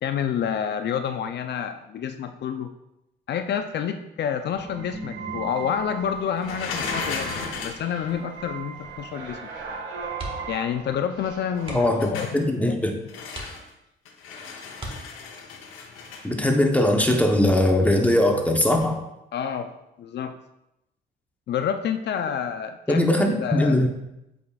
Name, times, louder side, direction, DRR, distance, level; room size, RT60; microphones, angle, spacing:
voice 1, 0.0-2.7 3.3-7.3 7.6-9.4 10.5-12.7 19.3-19.7 20.0-20.3 21.5-23.1 23.4-23.8, left 8 dB, 60° left, 8 dB, 0.5 m, -28 dB
sound 1, 4.5-12.0, right 5 dB, 80° right, 1.5 m, -38 dB
sound 2, 6.4-7.9 11.6-12.4 13.1-13.7 14.0-16.3 18.6-18.8, left 5 dB, 90° left, 0.9 m, -34 dB
sound 3, 10.1-10.7 10.9-11.1 11.6-12.1 12.7-12.8 13.3-14.0 14.7-15.5 17.1-17.4 17.8-17.9, right 1 dB, 25° right, 1.5 m, -39 dB
voice 2, 11.7-13.0 16.2-19.0 22.9-23.9, left 1 dB, 5° left, 2 dB, 0.9 m, -20 dB
8.0 x 5.0 x 2.4 m, 0.88 s
cardioid pair, 90°, 20 cm